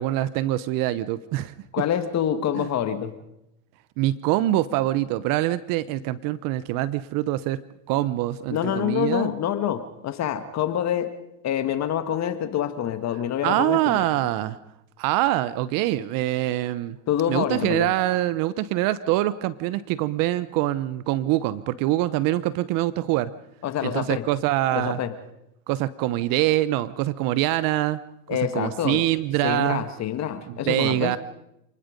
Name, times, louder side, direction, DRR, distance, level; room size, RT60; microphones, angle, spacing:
voice 1, 0.0-1.5 2.5-2.7 4.0-7.6 7.9-9.3 13.4-14.6 15.0-17.0 17.3-23.3 23.8-25.0 25.7-28.0 28.5-29.8 30.5-31.2, right 15 dB, 50° right, 16 dB, 0.9 m, -24 dB
voice 2, 1.7-3.1 8.5-11.1 11.4-14.1 17.1-17.9 23.6-24.2 24.7-25.1 28.3-29.0 29.4-31.1, left 10 dB, 40° left, 9 dB, 1.8 m, -26 dB
28.5 x 19.5 x 5.2 m, 0.84 s
hypercardioid pair, 105°, 42 cm